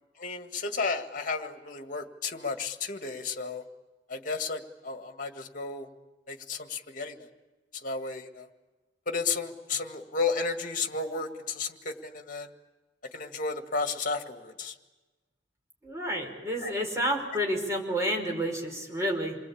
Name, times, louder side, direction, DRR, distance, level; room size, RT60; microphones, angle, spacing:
voice 1, 0.2-3.6 4.1-5.9 6.3-7.3 7.8-8.5 9.1-12.5 13.1-14.8 16.6-16.7, left 4 dB, 50° left, 5 dB, 2.0 m, -33 dB
voice 2, 15.8-19.4, equal, 15° right, 1 dB, 5.3 m, -30 dB
28.0 x 21.0 x 8.6 m, 1.2 s
head